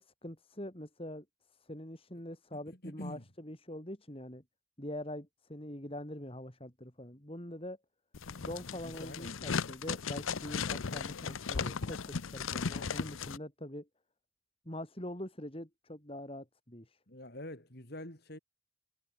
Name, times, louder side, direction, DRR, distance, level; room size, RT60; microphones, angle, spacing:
voice 1, 0.0-4.4 4.8-7.8 8.4-13.9 14.7-17.0, left 1 dB, 25° left, 3.6 m, -44 dB
voice 2, 2.5-3.2 8.8-9.4 17.1-18.4, left 1 dB, 50° left, 4.7 m, -46 dB
sound 1, 8.1-13.4, left 5 dB, 80° left, 0.7 m, -36 dB
head